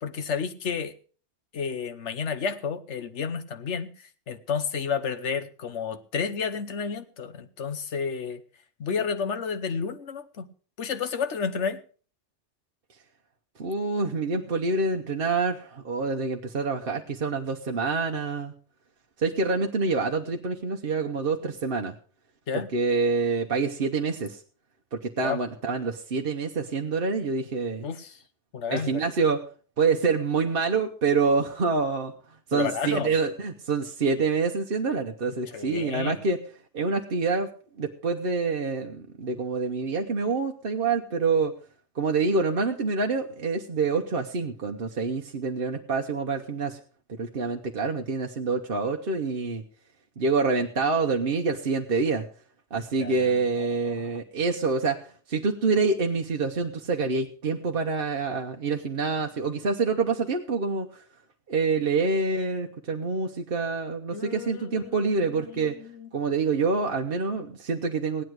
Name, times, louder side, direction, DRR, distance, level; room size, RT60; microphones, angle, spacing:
voice 1, 0.0-0.9 1.5-3.9 4.3-8.4 8.8-10.5 10.8-11.8 22.5-22.7 25.2-25.4 27.8-28.2 28.5-29.0 32.5-33.1 35.5-36.2 53.0-53.3 53.6-54.2 64.1-66.1, left 6 dB, 80° left, 1.3 m, -31 dB
voice 2, 13.6-18.5 19.2-21.9 22.5-24.4 25.0-27.9 28.7-29.4 29.8-32.1 32.5-36.4 36.7-37.5 37.8-41.5 42.0-46.8 47.1-49.6 50.2-52.3 52.7-55.0 55.3-61.0 61.5-65.7 66.1-68.2, right 4 dB, 55° right, 1.2 m, -26 dB
16.5 x 10.0 x 4.7 m
omnidirectional pair, 1.2 m